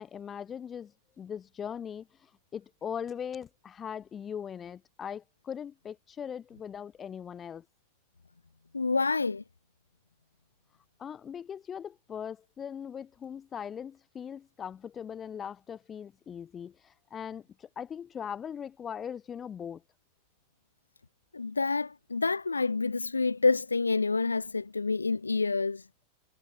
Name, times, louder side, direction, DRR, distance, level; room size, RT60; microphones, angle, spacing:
voice 1, 0.0-7.7 11.0-19.8, left 8 dB, 25° left, 3.6 m, -40 dB
voice 2, 8.7-9.4 21.3-25.8, left 4 dB, 80° left, 0.8 m, -28 dB
figure-of-eight pair, 90°, 0 cm